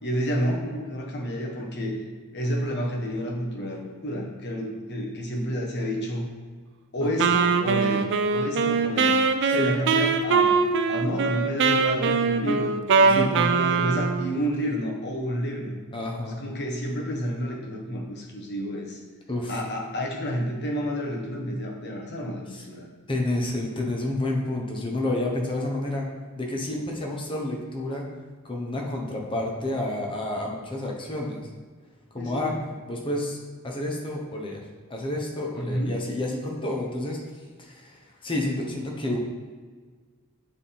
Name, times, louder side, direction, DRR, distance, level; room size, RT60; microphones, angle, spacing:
voice 1, 0.0-1.9 2.3-6.3 6.9-12.7 13.0-15.8 16.4-19.0 19.5-22.9 32.2-32.6 35.5-36.0, equal, 55° left, 0 dB, 1.2 m, -30 dB
Wind instrument woodwind instrument, 7.2-14.3, right 5 dB, 60° right, 0.4 m, -22 dB
voice 2, 15.9-16.4 19.3-19.6 22.5-22.6 23.1-26.1 26.4-28.1 28.4-31.5 32.1-32.6 32.9-33.4 33.6-34.6 34.9-37.2 37.6-39.2, left 1 dB, 25° left, 0 dB, 1.0 m, -29 dB
7.9 x 3.7 x 4.3 m, 1.5 s
head